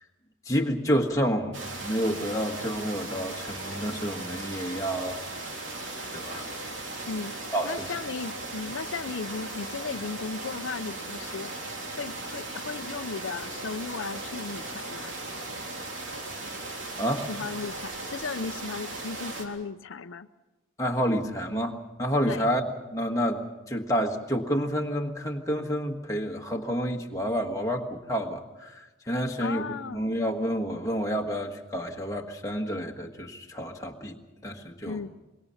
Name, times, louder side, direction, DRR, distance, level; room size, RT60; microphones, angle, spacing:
voice 1, 0.4-5.2 6.1-6.5 7.5-7.7 17.0-17.3 20.8-22.6 22.9-35.0, equal, 15° left, 1 dB, 1.5 m, -29 dB
sound 1, 1.5-19.5, right 2 dB, 70° right, 3.3 m, -37 dB
voice 2, 7.6-11.5 12.0-15.1 17.3-20.3 22.3-22.5 29.4-30.0 34.9-35.1, left 5 dB, 75° left, 10 dB, 0.6 m, -35 dB
24.5 x 22.0 x 5.7 m, 1.1 s
head